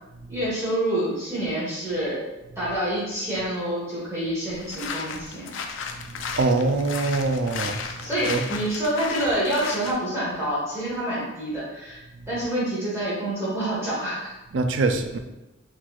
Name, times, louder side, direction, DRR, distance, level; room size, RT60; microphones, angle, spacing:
voice 1, 0.3-2.2 2.6-5.5 8.0-12.0 12.3-14.3, right 1 dB, 15° right, -9 dB, 1.4 m, -27 dB
sound 1, 4.5-10.0, left 5 dB, 65° left, 0.4 m, -35 dB
voice 2, 6.3-7.9 8.3-8.4 14.5-15.2, right 3 dB, 60° right, 6 dB, 0.4 m, -23 dB
4.4 x 4.1 x 2.4 m, 1.0 s
head